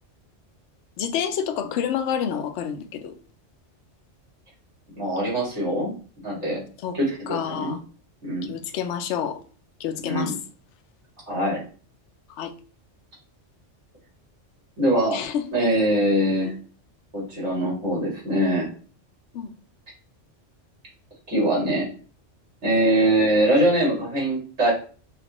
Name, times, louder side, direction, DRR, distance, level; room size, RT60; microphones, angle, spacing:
voice 1, 1.0-3.2 6.8-7.0 7.3-7.8 8.4-9.4 9.8-10.3 12.3-12.5 15.1-15.4 16.4-16.5 19.3-19.5, left 8 dB, 75° left, 0.9 m, -28 dB
voice 2, 5.0-5.9 6.2-6.6 6.9-7.7 8.2-8.5 10.0-10.3 11.3-11.6 14.8-15.2 15.5-16.5 17.1-18.7 21.3-21.9 22.6-24.7, right 1 dB, 70° right, 2.5 m, -22 dB
5.7 x 2.5 x 3.0 m
omnidirectional pair, 1.2 m